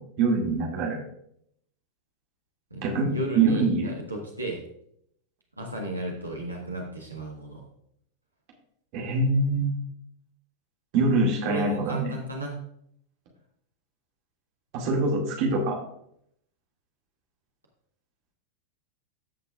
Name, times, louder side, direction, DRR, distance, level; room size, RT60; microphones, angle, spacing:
voice 1, 0.2-1.0 2.8-3.9 8.9-9.7 10.9-12.1 14.7-15.8, right 3 dB, 45° right, -1 dB, 2.3 m, -24 dB
voice 2, 2.7-4.6 5.6-7.6 11.5-12.6, right 1 dB, 85° right, -1 dB, 1.4 m, -34 dB
15.0 x 5.7 x 2.5 m, 0.71 s
figure-of-eight pair, 90°, 0 cm